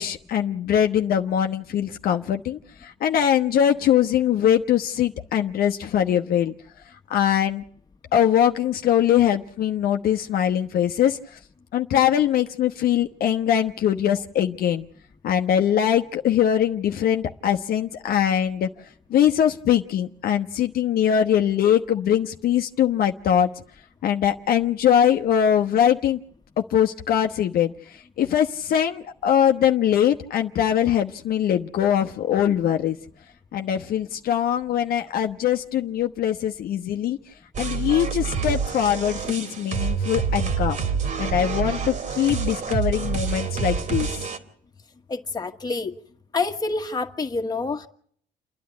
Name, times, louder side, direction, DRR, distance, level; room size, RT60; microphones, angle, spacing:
voice 1, 0.0-6.5 7.1-7.6 8.1-11.4 11.7-14.9 15.2-18.7 19.1-23.5 24.0-26.2 26.7-33.0 33.5-37.2 37.6-40.8 41.2-44.3, left 9 dB, 60° left, 1.0 m, -22 dB
sound 1, 37.5-44.4, right 5 dB, 45° right, 2.7 m, -27 dB
voice 2, 45.1-45.9 46.3-47.9, left 3 dB, 25° left, 1.8 m, -27 dB
29.0 x 10.5 x 9.6 m
cardioid pair, 110°, 17 cm